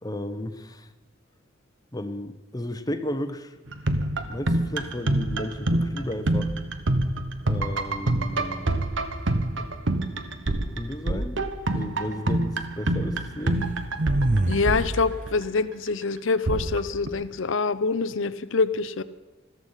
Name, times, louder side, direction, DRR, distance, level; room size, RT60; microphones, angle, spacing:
voice 1, 0.0-0.9 1.9-3.5 4.3-6.5 7.4-8.7 10.7-11.4 11.7-13.7, left 1 dB, 20° left, 10 dB, 0.9 m, -33 dB
sound 1, 3.7-15.6 16.5-17.1, right 1 dB, 65° right, 1.1 m, -26 dB
sound 2, 14.0-14.9, right 2 dB, 40° right, 0.6 m, -23 dB
voice 2, 14.5-19.0, left 4 dB, 70° left, 15 dB, 0.7 m, -25 dB
14.5 x 14.0 x 5.7 m, 1.2 s
head